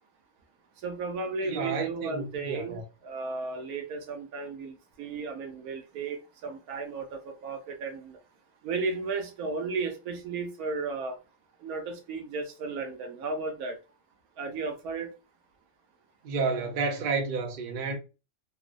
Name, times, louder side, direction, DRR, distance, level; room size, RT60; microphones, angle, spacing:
voice 1, 0.8-8.2 8.6-11.2 11.6-13.8 14.4-15.1, right 4 dB, 80° right, 1.1 m, -34 dB
voice 2, 1.4-2.8 16.2-18.0, right 4 dB, 55° right, 0.6 m, -30 dB
2.9 x 2.0 x 2.4 m
omnidirectional pair, 1.5 m